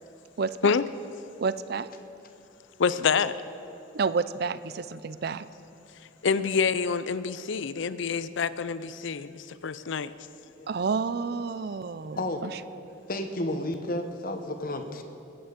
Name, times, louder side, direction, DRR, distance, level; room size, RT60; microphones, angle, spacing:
voice 1, 0.4-0.7 1.4-1.9 3.9-5.5 10.7-12.6, right 5 dB, 50° right, 15 dB, 0.4 m, -30 dB
voice 2, 2.8-3.3 6.2-10.1, left 5 dB, 70° left, 15 dB, 0.5 m, -27 dB
voice 3, 13.1-15.0, left 1 dB, 45° left, 6 dB, 1.0 m, -31 dB
21.0 x 8.8 x 5.1 m, 2.8 s
head